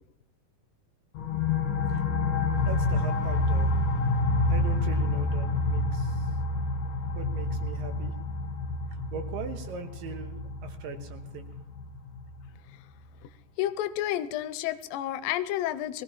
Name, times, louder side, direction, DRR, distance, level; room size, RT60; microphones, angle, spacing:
sound 1, 1.2-12.5, left 2 dB, 55° left, 2.3 m, -28 dB
voice 1, 2.6-3.8 4.5-6.3 7.2-8.1 9.1-11.5, right 6 dB, 80° right, 5 dB, 2.8 m, -40 dB
voice 2, 13.6-16.0, left 12 dB, 85° left, 12 dB, 2.3 m, -30 dB
21.0 x 16.0 x 3.0 m, 0.85 s
omnidirectional pair, 4.0 m